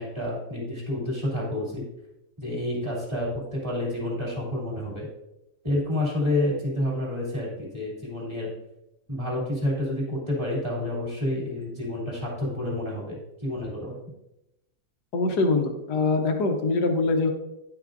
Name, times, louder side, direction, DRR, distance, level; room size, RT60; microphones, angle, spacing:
voice 1, 0.0-1.8 2.4-5.1 5.6-8.5 9.1-14.0, left 1 dB, 15° right, -4 dB, 2.6 m, -29 dB
voice 2, 15.1-17.3, left 3 dB, 60° left, 5 dB, 1.4 m, -23 dB
10.0 x 5.9 x 2.6 m, 0.89 s
omnidirectional pair, 2.1 m